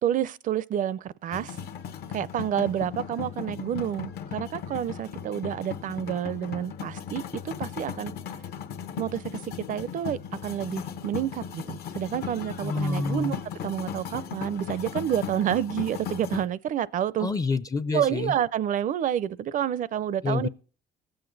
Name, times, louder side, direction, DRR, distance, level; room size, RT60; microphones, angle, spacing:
voice 1, 0.0-1.6 2.1-8.1 9.0-17.3 17.9-20.5, right 10 dB, 50° right, 0.5 m, -29 dB
sound 1, 1.3-16.4, left 8 dB, 70° left, 0.9 m, -37 dB
voice 2, 12.6-13.4 17.2-18.3 20.2-20.5, left 4 dB, 20° left, 0.4 m, -27 dB
19.0 x 7.9 x 3.9 m
cardioid pair, 110°, 17 cm